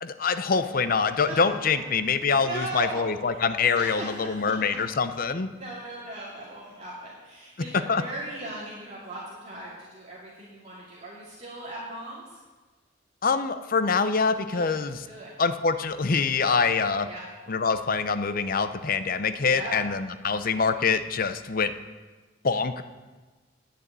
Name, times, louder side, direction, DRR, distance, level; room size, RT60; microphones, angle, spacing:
voice 1, 0.0-5.5 7.9-8.0 13.2-15.0 15.4-17.1 17.5-21.7 22.4-22.8, left 5 dB, 50° left, 11 dB, 0.7 m, -25 dB
voice 2, 2.2-3.0 3.3-4.6 5.5-12.4 14.5-14.8 15.0-15.3 17.0-17.2 19.5-19.7, right 2 dB, 35° right, -8 dB, 2.6 m, -38 dB
10.5 x 6.8 x 8.9 m, 1.3 s
head